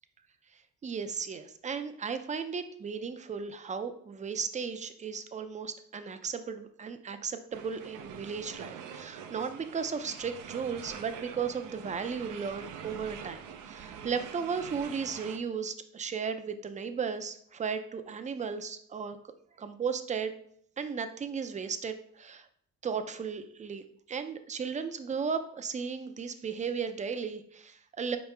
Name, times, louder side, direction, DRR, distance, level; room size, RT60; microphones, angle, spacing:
voice 1, 0.5-19.2 19.6-20.3 20.8-22.5 22.8-28.2, right 6 dB, 25° right, 9 dB, 0.4 m, -35 dB
sound 1, 7.5-15.4, right 7 dB, 85° right, 0.5 m, -45 dB
4.6 x 3.0 x 3.3 m, 0.65 s
cardioid pair, 90°, 30 cm